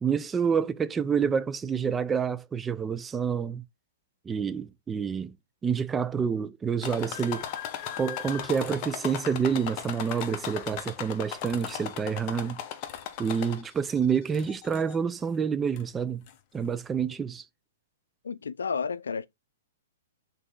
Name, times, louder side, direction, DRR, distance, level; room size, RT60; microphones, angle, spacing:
voice 1, 0.0-3.6 4.2-5.4 5.6-7.5 8.0-12.6 13.2-16.2 16.5-17.4, right 6 dB, 15° right, 0.4 m, -28 dB
sound 1, 6.8-13.8 14.3-15.0 15.8-15.9 16.3-16.4, left 9 dB, 35° left, 1.1 m, -37 dB
voice 2, 18.2-19.3, left 5 dB, 90° left, 0.5 m, -31 dB
6.5 x 4.0 x 3.7 m
hypercardioid pair, 135°, 0 cm